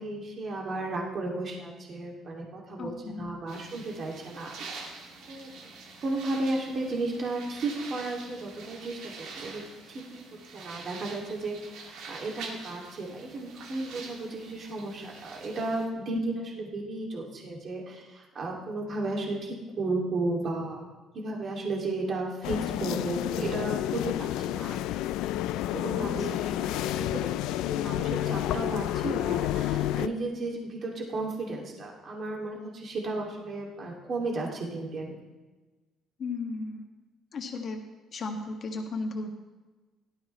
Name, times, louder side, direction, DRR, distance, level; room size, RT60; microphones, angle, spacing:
voice 1, 0.0-4.7 5.3-5.5 6.0-9.6 9.9-20.9 21.1-25.0 25.7-27.3 27.5-35.2, right 2 dB, 40° right, -1 dB, 2.5 m, -34 dB
voice 2, 2.8-3.3 26.0-26.1 36.2-36.8 37.3-37.8 38.1-39.3, left 3 dB, 45° left, 3 dB, 1.8 m, -35 dB
sound 1, 3.5-15.9, right 4 dB, 75° right, 2.4 m, -45 dB
sound 2, 22.4-30.1, left 13 dB, 85° left, 0.4 m, -30 dB
17.0 x 12.5 x 3.2 m, 1.2 s
cardioid pair, 130°, 0 cm